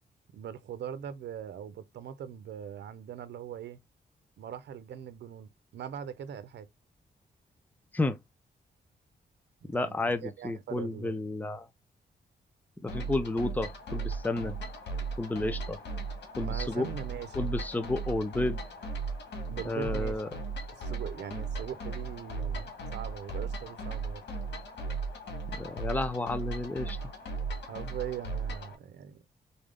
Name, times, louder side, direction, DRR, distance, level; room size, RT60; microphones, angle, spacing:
voice 1, 0.3-3.8 4.4-6.7 9.7-11.2 16.4-17.5 19.5-20.2 20.8-24.2 27.7-29.2, right 9 dB, 85° right, 0.6 m, -41 dB
voice 2, 9.7-11.7 12.8-14.6 15.2-15.8 16.4-16.9 17.4-18.6 19.7-20.3 25.5-27.1, left 2 dB, 10° left, 0.6 m, -31 dB
sound 1, 12.9-28.7, right 3 dB, 85° left, 1.8 m, -37 dB
4.1 x 3.5 x 3.6 m
cardioid pair, 100°, 17 cm